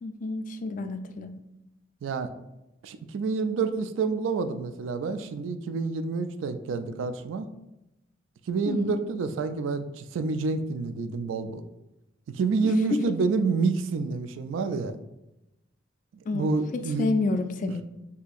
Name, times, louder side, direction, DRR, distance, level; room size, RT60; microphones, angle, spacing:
voice 1, 0.0-1.3 8.7-9.0 12.9-13.0 16.3-16.5 17.0-17.8, left 3 dB, 45° left, 8 dB, 0.3 m, -28 dB
voice 2, 2.0-2.3 2.8-7.5 8.5-11.6 12.3-15.0 16.3-17.1, right 4 dB, 80° right, 10 dB, 0.3 m, -28 dB
4.2 x 2.8 x 2.3 m, 0.93 s
head